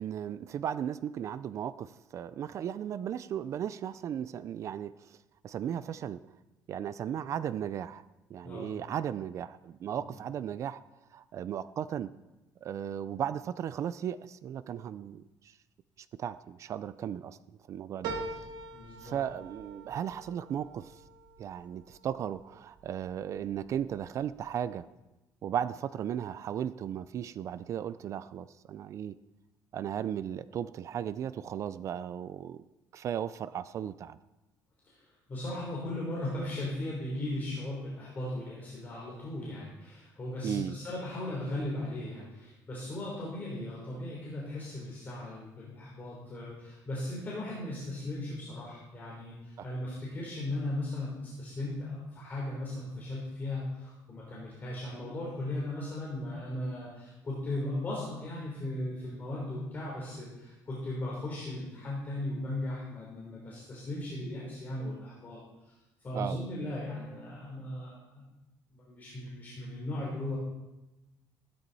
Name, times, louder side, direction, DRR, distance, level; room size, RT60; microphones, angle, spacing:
voice 1, 0.0-5.2 5.4-6.2 6.7-8.0 8.3-10.8 11.1-12.1 12.6-15.6 16.0-17.4 17.7-18.2 19.0-21.0 21.4-24.8 25.4-29.2 29.7-32.6 32.9-34.2 40.4-40.8 49.6-49.7 66.1-66.4, right 9 dB, 45° right, 15 dB, 0.4 m, -36 dB
sound 1, 18.0-22.8 23.3-24.0 24.3-24.4, right 3 dB, 70° right, 2.0 m, -43 dB
voice 2, 18.7-19.2 34.8-65.7 66.0-68.2 68.7-70.4, left 1 dB, 25° left, -5 dB, 3.6 m, -37 dB
16.0 x 13.0 x 4.1 m, 1.0 s
cardioid pair, 165°, 7 cm